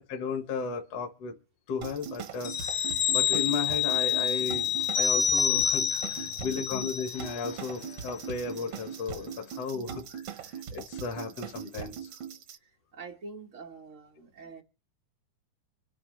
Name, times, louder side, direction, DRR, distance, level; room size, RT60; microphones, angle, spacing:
voice 1, 0.0-1.3 1.7-12.1, left 5 dB, 60° left, 2.0 m, -35 dB
sound 1, 1.8-12.6, right 8 dB, 65° right, 1.3 m, -41 dB
sound 2, 2.4-7.6 7.9-8.0, left 7 dB, 75° left, 1.4 m, -28 dB
voice 2, 12.9-14.6, right 4 dB, 90° right, 0.6 m, -45 dB
25.5 x 9.0 x 3.1 m
omnidirectional pair, 3.6 m